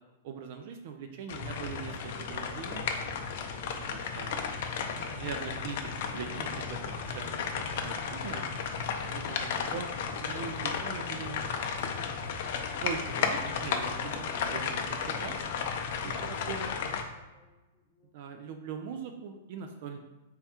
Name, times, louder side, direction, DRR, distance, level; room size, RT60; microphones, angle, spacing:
voice 1, 0.2-2.9 3.7-4.5 5.1-5.8 6.1-6.8 7.1-8.4 9.1-9.9 10.2-11.5 12.6-15.4 16.0-16.7 18.1-20.0, right 6 dB, 50° right, 5 dB, 0.4 m, -41 dB
sound 1, 1.3-17.0, left 6 dB, 55° left, 0.4 m, -34 dB
voice 2, 9.0-9.5 15.9-16.8 17.1-18.2, left 2 dB, 15° left, -4 dB, 1.0 m, -56 dB
3.4 x 2.2 x 4.3 m, 1.1 s
hypercardioid pair, 155°, 0 cm